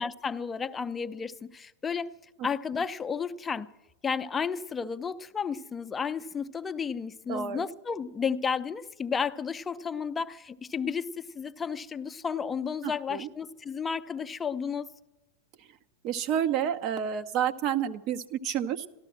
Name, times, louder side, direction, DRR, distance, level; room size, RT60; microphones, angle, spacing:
voice 1, 0.0-2.1 2.4-3.7 4.0-14.9, left 6 dB, 15° left, 0.5 m, -32 dB
voice 2, 7.3-7.6 12.8-13.3 16.0-18.9, right 9 dB, 40° right, 0.6 m, -29 dB
13.0 x 13.0 x 7.4 m
figure-of-eight pair, 90°, 0 cm